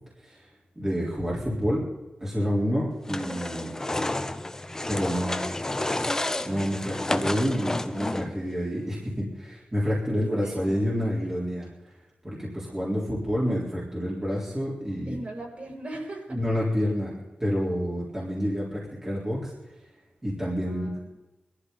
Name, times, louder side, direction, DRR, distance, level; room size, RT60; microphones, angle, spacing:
voice 1, 0.8-1.9 2.2-3.7 4.9-5.5 6.5-11.7 12.2-15.2 16.3-17.1 17.4-19.5 20.2-20.9, equal, 15° right, -7 dB, 4.1 m, -28 dB
sound 1, 3.1-8.5, left 2 dB, 15° left, 0.7 m, -30 dB
voice 2, 10.4-10.9 15.1-16.3 20.6-21.1, right 1 dB, 45° right, -2 dB, 6.7 m, -39 dB
22.5 x 13.5 x 4.1 m, 1.1 s
wide cardioid pair, 125°, 3 cm